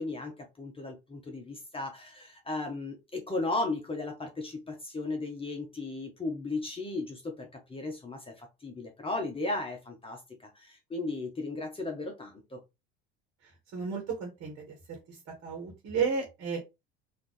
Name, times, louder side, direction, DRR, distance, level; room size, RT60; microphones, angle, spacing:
voice 1, 0.0-12.6, left 2 dB, 15° left, 2 dB, 1.3 m, -36 dB
voice 2, 13.7-16.6, right 5 dB, 50° right, 3 dB, 1.6 m, -33 dB
3.8 x 2.9 x 3.3 m, 0.24 s
hypercardioid pair, 75°, 31 cm